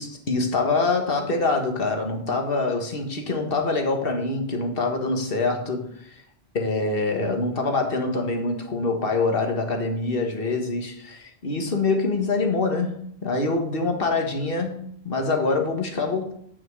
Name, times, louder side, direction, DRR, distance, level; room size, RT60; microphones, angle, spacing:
voice 1, 0.0-6.2 6.5-16.3, left 3 dB, 55° left, 1.7 m, -25 dB
9.0 x 6.3 x 4.8 m
omnidirectional pair, 1.2 m